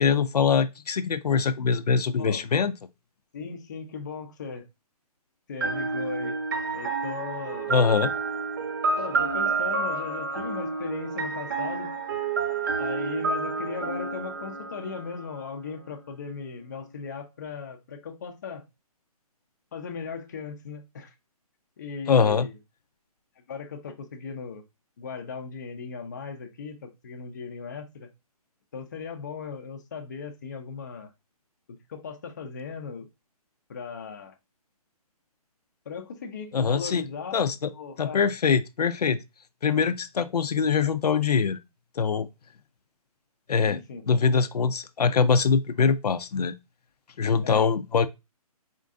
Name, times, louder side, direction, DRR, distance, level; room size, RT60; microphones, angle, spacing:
voice 1, 0.0-2.7 7.7-8.1 22.1-22.5 36.5-37.0 37.3-37.7 38.0-39.2 39.6-41.6 42.0-42.3 43.5-43.8 44.1-46.5 47.2-48.1, left 6 dB, 90° left, 0.6 m, -23 dB
voice 2, 2.2-2.7 3.3-4.7 5.5-6.4 6.7-7.8 9.0-12.0 12.8-18.6 19.7-21.1 21.8-22.6 23.5-24.6 25.0-28.1 28.7-31.1 31.7-33.1 33.7-34.3 35.9-37.4 37.7-38.2 43.6-44.0 47.4-47.8, left 5 dB, 30° left, 0.5 m, -37 dB
sound 1, 5.6-15.4, right 4 dB, 30° right, 0.6 m, -29 dB
4.4 x 2.6 x 3.5 m
hypercardioid pair, 170°, 20 cm